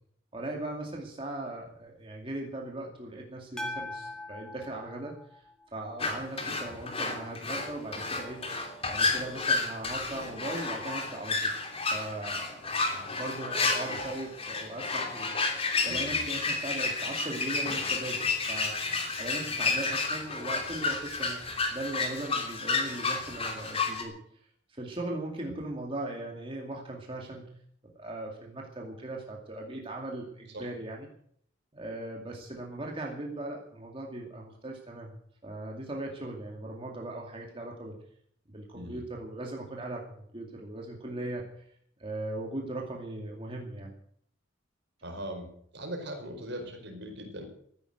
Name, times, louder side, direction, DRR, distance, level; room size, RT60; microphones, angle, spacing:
voice 1, 0.3-5.5 5.7-8.5 8.9-11.5 11.9-15.3 15.8-18.8 19.2-21.4 21.7-24.4 24.8-27.5 27.9-31.1 31.7-35.2 35.4-38.0 38.5-41.6 42.0-43.9, right 2 dB, 30° right, -1 dB, 2.4 m, -39 dB
sound 1, 3.6-6.0, left 1 dB, 5° left, 3.0 m, -41 dB
sound 2, 6.0-24.0, left 3 dB, 30° left, 3.1 m, -31 dB
voice 2, 15.9-16.3 25.4-25.6 30.5-30.7 38.7-39.1 45.0-47.4, equal, 60° right, 4 dB, 5.0 m, -40 dB
15.0 x 10.5 x 8.0 m, 0.65 s
head